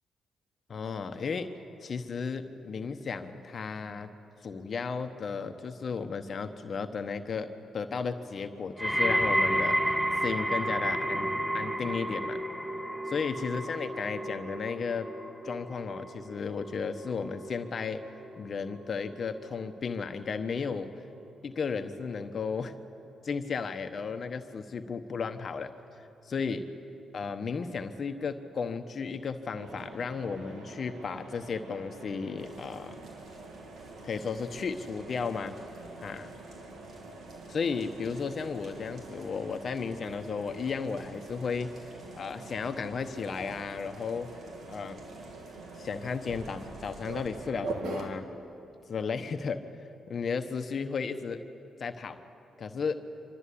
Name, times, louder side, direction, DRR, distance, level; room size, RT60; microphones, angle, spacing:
voice 1, 0.7-1.5 1.8-4.1 4.4-9.9 10.2-12.4 13.1-15.1 15.4-18.0 18.4-20.9 21.4-22.7 23.2-25.7 26.3-26.6 27.1-33.0 34.0-35.5 36.0-36.3 37.5-41.7 42.1-44.3 44.7-45.1 45.8-48.3 48.9-49.6 50.1-51.4 51.8-52.2 52.6-53.0, left 5 dB, 55° left, 8 dB, 1.0 m, -34 dB
sound 1, 8.8-19.9 20.2-20.7 21.5-21.6, right 1 dB, 5° right, 1.3 m, -32 dB
Mechanisms, 29.6-48.1, right 3 dB, 80° right, 2.2 m, -45 dB
sound 2, 32.4-47.3, right 1 dB, 60° right, 6.3 m, -56 dB
25.5 x 13.0 x 8.5 m, 2.9 s
supercardioid pair, 55°, 0 cm